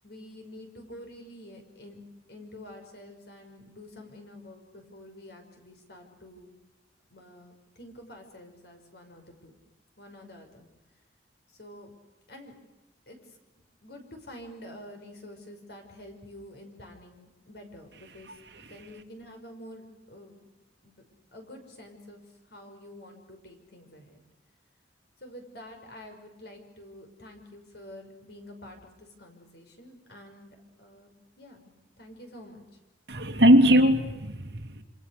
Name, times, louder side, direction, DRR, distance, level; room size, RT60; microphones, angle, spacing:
voice 1, 0.0-2.0 2.3-6.5 7.1-9.6 10.0-10.7 11.5-11.9 12.3-12.6 13.1-20.5 20.8-20.9 21.3-22.2 22.5-24.2 25.2-32.6, left 1 dB, 60° left, 5.9 m, -48 dB
voice 2, 33.1-34.8, equal, 65° right, 2.6 m, -20 dB
28.0 x 26.5 x 6.7 m
head